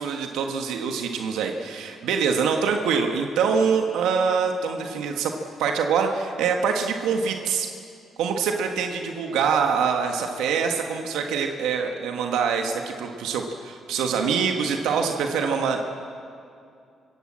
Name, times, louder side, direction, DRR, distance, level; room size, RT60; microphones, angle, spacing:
voice 1, 0.0-5.3 5.6-7.7 8.2-15.8, right 6 dB, 90° right, 4 dB, 1.6 m, -24 dB
25.5 x 16.5 x 7.6 m, 2.4 s
cardioid pair, 90°, 0 cm